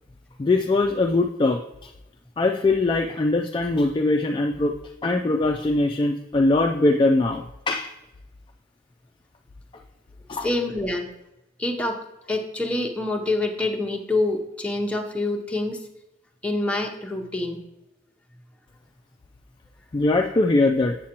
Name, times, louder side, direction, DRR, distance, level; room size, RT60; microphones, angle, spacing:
voice 1, 0.4-1.9 2.4-4.7 5.0-7.9 10.3-10.5 19.9-21.0, left 2 dB, 25° left, 2 dB, 0.3 m, -21 dB
voice 2, 10.4-11.1 11.6-12.0 12.3-15.8 16.4-17.6, left 2 dB, 5° left, 1 dB, 0.7 m, -26 dB
7.4 x 7.3 x 2.9 m, 0.91 s
head